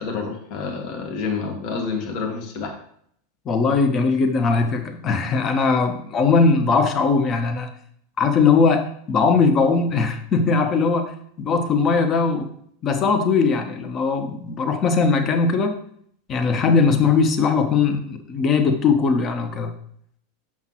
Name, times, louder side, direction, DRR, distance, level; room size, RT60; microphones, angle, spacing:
voice 1, 0.0-2.8, left 5 dB, 50° left, 2 dB, 1.3 m, -28 dB
voice 2, 3.5-7.7 8.2-12.5 12.8-15.8 16.3-19.7, left 4 dB, 35° left, 7 dB, 0.9 m, -20 dB
5.9 x 5.7 x 3.0 m, 0.64 s
figure-of-eight pair, 85°, 0 cm